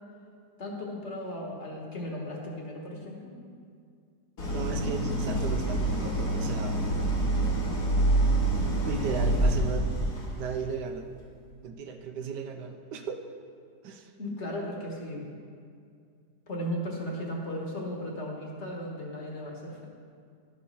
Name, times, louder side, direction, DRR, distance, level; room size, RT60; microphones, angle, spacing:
voice 1, 0.6-3.3 14.2-15.2 16.5-19.9, equal, 45° left, -1 dB, 1.6 m, -36 dB
Idling, 4.4-10.5, right 1 dB, 70° left, 2.3 m, -26 dB
voice 2, 4.5-6.8 8.8-11.1 11.6-13.2 13.8-14.1, right 6 dB, 80° right, 6 dB, 1.3 m, -36 dB
11.5 x 5.2 x 5.6 m, 2.3 s
omnidirectional pair, 1.8 m